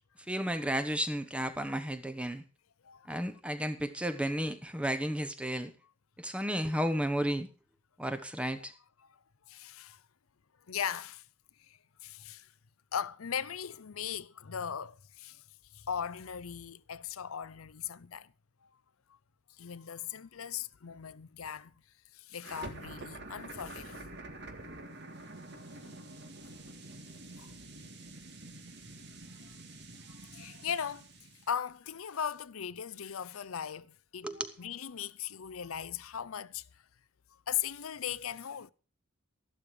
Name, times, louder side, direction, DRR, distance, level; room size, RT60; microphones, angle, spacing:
voice 1, 0.3-2.4 3.1-5.7 6.2-7.5 8.0-8.7 34.2-34.5, equal, 5° right, 1.0 m, -33 dB
voice 2, 2.8-3.2 9.5-10.0 10.7-11.2 11.7-12.5 12.9-15.4 15.7-18.3 19.6-21.7 22.1-24.1 25.8-26.0 26.4-26.5 27.4-27.5 29.4-29.5 30.3-31.1 31.5-36.7 37.5-38.7, left 8 dB, 90° left, 0.6 m, -38 dB
sound 1, 22.4-31.5, right 2 dB, 55° right, 2.0 m, -47 dB
13.5 x 12.0 x 4.8 m
head